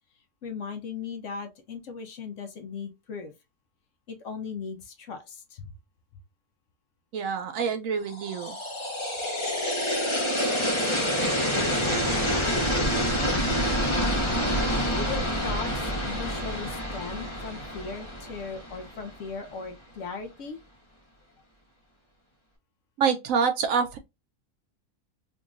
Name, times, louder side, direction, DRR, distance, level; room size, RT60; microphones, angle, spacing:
voice 1, 0.4-3.3 4.1-5.7 13.8-14.1 14.8-20.6, left 5 dB, 60° left, 1.0 m, -38 dB
voice 2, 7.1-8.5 23.0-24.0, right 6 dB, 70° right, 0.9 m, -26 dB
sound 1, 8.1-19.1, equal, 20° left, 1.0 m, -27 dB
3.6 x 2.9 x 2.4 m
omnidirectional pair, 1.6 m